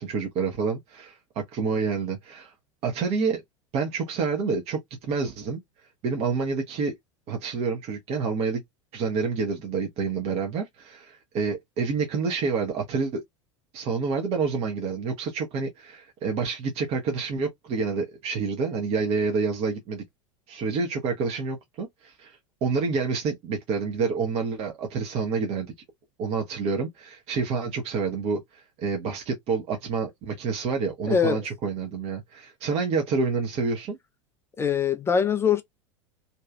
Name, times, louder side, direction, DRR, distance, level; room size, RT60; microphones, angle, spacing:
voice 1, 0.0-2.5 2.8-3.4 3.7-4.8 5.1-5.6 6.0-6.9 7.3-8.6 8.9-13.2 13.7-20.0 20.5-25.7 26.2-34.0, right 5 dB, 40° right, 0.7 m, -28 dB
voice 2, 31.1-31.4 34.6-35.6, left 7 dB, 15° left, 0.3 m, -22 dB
2.7 x 2.3 x 2.2 m
figure-of-eight pair, 85°, 16 cm